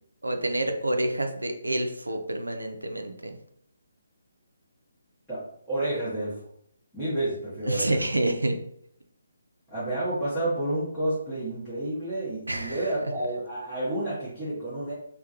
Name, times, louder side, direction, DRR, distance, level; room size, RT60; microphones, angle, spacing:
voice 1, 0.2-3.4 7.6-8.6 12.5-12.8, right 1 dB, 75° right, 5 dB, 0.4 m, -28 dB
voice 2, 5.3-6.4 6.9-8.0 9.7-14.9, right 1 dB, ahead, -15 dB, 0.8 m, -30 dB
2.2 x 2.1 x 2.8 m, 0.67 s
figure-of-eight pair, 145°, 0 cm